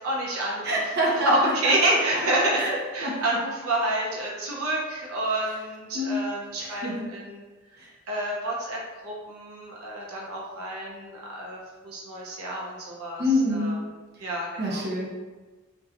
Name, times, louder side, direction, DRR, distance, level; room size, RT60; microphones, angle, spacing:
voice 1, 0.0-2.6 2.9-7.4 8.1-13.2 13.5-13.8 14.2-14.9, right 1 dB, 85° right, -3 dB, 0.6 m, -28 dB
voice 2, 0.6-1.7 2.6-3.1 5.9-6.2 6.6-7.0 7.8-7.9 13.2-13.8 14.6-15.1, equal, 50° right, -4 dB, 0.7 m, -26 dB
2.7 x 2.2 x 3.7 m, 1.3 s
head